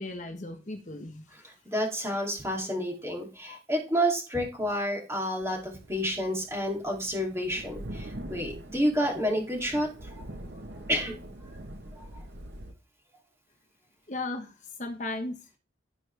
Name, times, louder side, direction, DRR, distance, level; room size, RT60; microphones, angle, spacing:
voice 1, 0.0-1.3 2.6-2.7 3.5-3.6 14.1-15.4, left 2 dB, 40° left, 5 dB, 1.2 m, -36 dB
voice 2, 1.4-10.1 10.9-11.2 12.0-12.1, equal, 15° right, -1 dB, 2.9 m, -30 dB
sound 1, 5.4-12.7, right 1 dB, 75° right, 1.2 m, -44 dB
16.0 x 6.2 x 3.4 m, 0.31 s
head